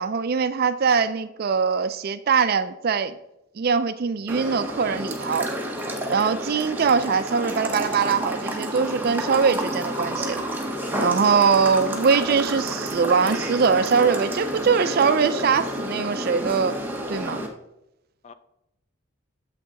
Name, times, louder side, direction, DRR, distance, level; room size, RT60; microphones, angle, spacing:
voice 1, 0.0-3.2 3.6-5.5 6.1-10.4 11.0-16.8 17.1-17.4, right 5 dB, 45° right, 13 dB, 0.4 m, -22 dB
sound 1, 4.3-17.5, equal, 10° right, 0.8 m, -30 dB
voice 2, 10.8-12.0 18.2-18.3, left 5 dB, 30° left, 11 dB, 0.4 m, -48 dB
7.4 x 5.8 x 4.0 m, 0.86 s
head